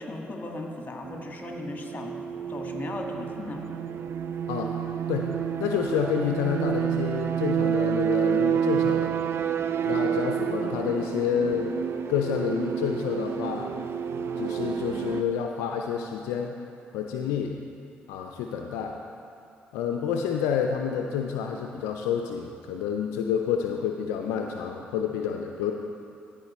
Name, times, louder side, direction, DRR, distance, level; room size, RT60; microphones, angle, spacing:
voice 1, 0.0-2.2 2.5-3.6, left 2 dB, 35° left, 2 dB, 1.6 m, -37 dB
sound 1, 1.0-15.2, right 8 dB, 60° right, 0.4 m, -29 dB
voice 2, 5.6-9.2 9.8-11.7 12.1-13.7 14.2-16.5 16.9-17.6 18.1-18.9 19.7-25.7, left 7 dB, 85° left, 3 dB, 0.4 m, -29 dB
14.5 x 5.0 x 4.2 m, 2.5 s
hypercardioid pair, 50°, 5 cm